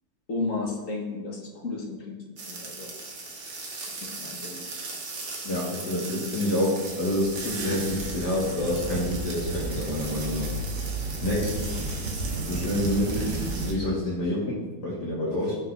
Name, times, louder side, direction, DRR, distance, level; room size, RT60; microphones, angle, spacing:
voice 1, 0.3-2.9 3.9-4.6 11.6-11.8, left 3 dB, 50° left, 1 dB, 1.7 m, -34 dB
sound 1, 2.4-13.7, right 3 dB, 60° right, 2.0 m, -38 dB
voice 2, 5.4-10.5 11.2-11.6 12.4-15.6, left 1 dB, 70° left, -6 dB, 2.5 m, -28 dB
sound 2, 6.9-13.7, right 2 dB, 75° right, 1.7 m, -33 dB
16.0 x 5.5 x 3.4 m, 1.3 s
omnidirectional pair, 1.9 m